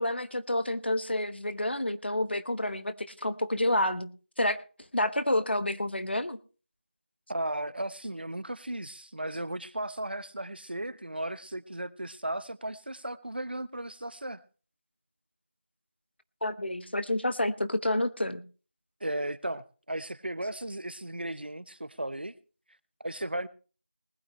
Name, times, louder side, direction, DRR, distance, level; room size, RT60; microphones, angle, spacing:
voice 1, 0.0-4.1 4.4-4.6 4.9-6.4 16.4-18.4, left 1 dB, 70° left, 12 dB, 1.2 m, -29 dB
voice 2, 7.3-14.4 19.0-22.3 23.0-23.5, right 1 dB, 60° right, 16 dB, 0.9 m, -35 dB
20.0 x 11.5 x 3.2 m, 0.36 s
figure-of-eight pair, 180°, 6 cm